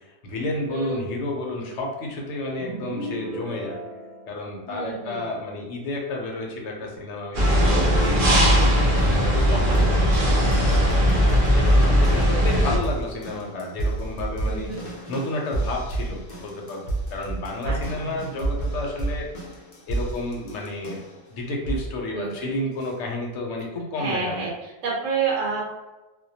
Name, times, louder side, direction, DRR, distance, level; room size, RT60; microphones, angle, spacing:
voice 1, 0.0-3.8 4.3-8.5 9.1-19.3 19.9-21.0 21.3-24.5, left 2 dB, 75° left, 0 dB, 0.9 m, -31 dB
voice 2, 0.7-1.1 4.7-5.3 9.4-9.8 14.5-14.8 17.6-18.0 22.1-22.5 23.9-25.6, right 5 dB, 80° right, -3 dB, 1.0 m, -30 dB
sound 1, 2.6-5.0 7.4-10.7, right 1 dB, ahead, 0.6 m, -36 dB
sound 2, 7.3-12.8, equal, 55° right, 0.7 m, -19 dB
sound 3, 8.0-21.2 21.6-22.0 22.8-22.9, right 2 dB, 55° left, 0.5 m, -30 dB
2.2 x 2.1 x 2.6 m, 1.1 s
omnidirectional pair, 1.3 m